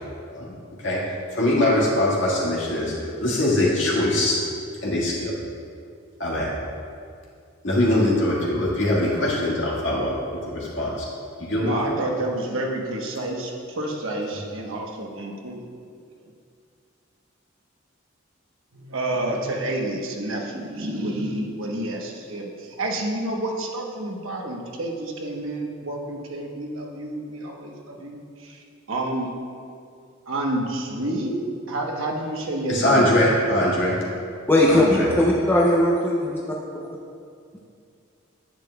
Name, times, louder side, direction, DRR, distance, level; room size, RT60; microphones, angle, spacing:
voice 1, 1.4-2.9 3.2-4.4 4.8-5.3 6.2-6.5 7.6-10.2 10.5-11.1 11.4-11.7 32.7-34.0 34.7-35.1, left 1 dB, 60° left, -5 dB, 1.9 m, -22 dB
voice 2, 11.6-15.6 18.7-28.6 28.9-29.3 30.3-33.3 34.7-35.2, right 1 dB, 70° right, 0 dB, 1.0 m, -29 dB
voice 3, 34.5-36.4, left 1 dB, 10° left, -4 dB, 0.5 m, -19 dB
10.0 x 8.6 x 2.3 m, 2.3 s
head